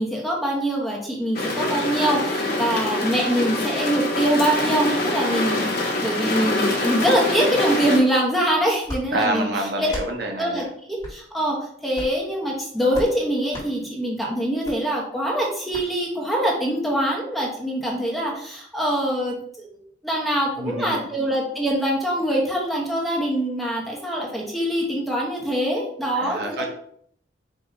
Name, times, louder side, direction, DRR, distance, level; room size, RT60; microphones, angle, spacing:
voice 1, 0.0-9.5 9.8-9.9 10.4-19.7 20.0-26.7, right 1 dB, ahead, -3 dB, 1.0 m, -24 dB
sound 1, 1.3-8.0, left 2 dB, 60° left, 1.1 m, -25 dB
sound 2, 8.8-9.0 9.8-10.1 11.0-11.2 11.9-12.2 12.9-13.1 13.5-13.7 14.6-14.8 15.7-15.9, equal, 20° left, 1.8 m, -34 dB
voice 2, 9.1-10.7 20.6-21.0 26.1-26.7, right 1 dB, 65° right, 2 dB, 0.8 m, -27 dB
4.8 x 2.9 x 3.9 m, 0.65 s
head